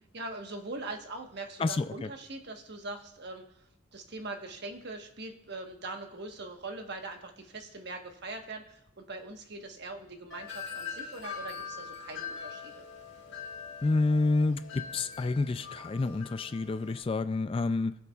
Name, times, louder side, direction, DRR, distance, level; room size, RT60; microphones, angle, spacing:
voice 1, 0.1-3.4 3.9-12.8, right 2 dB, 55° right, 4 dB, 1.2 m, -42 dB
voice 2, 1.6-2.1 13.8-17.9, left 3 dB, 25° left, 12 dB, 0.3 m, -29 dB
Wind chime, 10.3-17.0, left 6 dB, 60° left, 1.6 m, -43 dB
20.5 x 6.9 x 2.4 m, 0.79 s
head